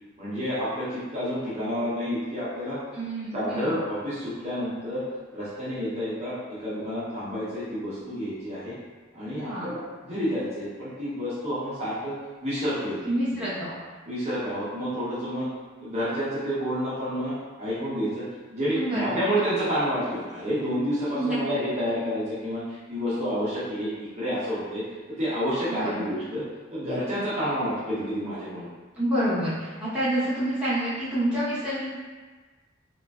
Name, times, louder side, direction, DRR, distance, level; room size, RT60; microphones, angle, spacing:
voice 1, 0.2-2.8 3.3-5.1 5.3-8.7 9.1-12.2 12.4-13.5 14.1-15.5 15.8-18.2 18.5-24.8 25.2-26.4 26.7-28.7, equal, 35° right, -11 dB, 0.7 m, -29 dB
voice 2, 2.9-3.7 9.5-9.6 13.1-13.8 18.7-19.2 21.1-21.6 25.7-26.0 27.1-27.2 29.0-31.9, right 1 dB, 5° right, -12 dB, 0.9 m, -28 dB
3.0 x 2.5 x 2.3 m, 1.3 s
head